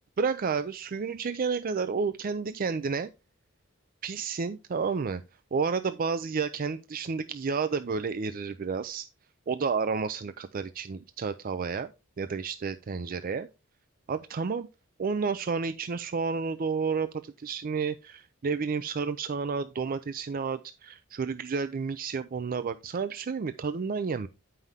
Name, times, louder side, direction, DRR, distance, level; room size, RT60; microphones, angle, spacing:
voice 1, 0.2-3.1 4.0-5.2 5.5-9.1 9.5-11.9 12.2-13.5 14.1-14.7 15.0-24.3, right 5 dB, 45° right, 0.4 m, -31 dB
9.4 x 5.6 x 3.5 m
head